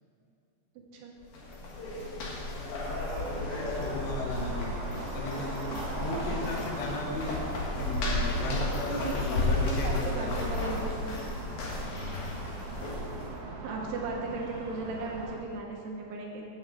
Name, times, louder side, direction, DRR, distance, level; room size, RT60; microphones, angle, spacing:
sound 1, 1.2-13.3, left 2 dB, 55° left, 2.5 m, -33 dB
sound 2, 2.8-15.4, right 3 dB, 55° right, 2.9 m, -41 dB
voice 1, 3.1-4.7 5.1-7.4 7.7-10.3 11.8-12.0, left 2 dB, 80° left, 0 dB, 3.4 m, -36 dB
voice 2, 8.9-11.2 13.6-16.4, right 3 dB, 75° right, 0 dB, 3.1 m, -36 dB
8.7 x 7.1 x 7.7 m, 2.6 s
omnidirectional pair, 4.9 m